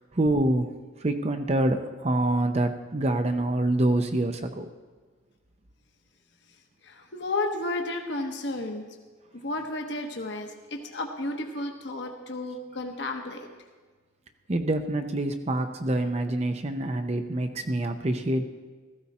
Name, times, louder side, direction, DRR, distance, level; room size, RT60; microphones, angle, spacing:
voice 1, 0.1-0.7 1.0-4.7 14.5-18.4, right 1 dB, 35° right, 7 dB, 0.7 m, -26 dB
voice 2, 6.8-8.8 9.3-13.4, left 2 dB, 60° left, 3 dB, 1.3 m, -32 dB
15.5 x 14.0 x 4.3 m, 1.4 s
head